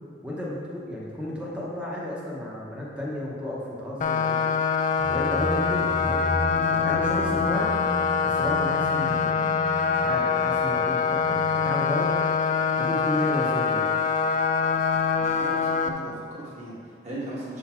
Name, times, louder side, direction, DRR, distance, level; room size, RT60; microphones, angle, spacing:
voice 1, 0.2-4.5 5.1-6.2 6.6-7.7 8.2-9.6 9.9-12.1 12.8-13.9, left 1 dB, 5° right, -5 dB, 0.9 m, -32 dB
sound 1, 4.0-15.9, left 5 dB, 40° left, 0.3 m, -24 dB
sound 2, 5.0-12.7, left 1 dB, 85° left, 1.5 m, -35 dB
voice 2, 15.2-17.6, right 1 dB, 35° right, -6 dB, 1.6 m, -38 dB
7.0 x 4.0 x 4.3 m, 2.2 s
head